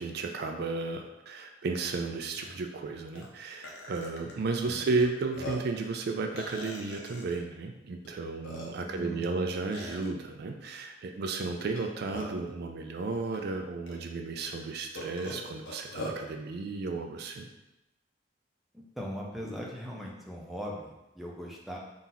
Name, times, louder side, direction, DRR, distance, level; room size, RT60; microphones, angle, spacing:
voice 1, 0.0-17.5, right 3 dB, 60° right, 4 dB, 0.4 m, -33 dB
Burping eructation, 1.9-2.0 2.3-2.5 3.2-3.3 3.6-4.3 5.0-5.1 5.3-5.8 6.4-7.4 8.0-8.1 8.4-9.0 9.7-10.1 11.6-12.5 13.3-13.4 13.9-14.0 14.9-16.2, equal, 85° left, 0.9 m, -41 dB
voice 2, 8.9-9.5 18.7-21.8, equal, ahead, -3 dB, 0.6 m, -40 dB
4.1 x 2.4 x 3.9 m, 0.97 s
head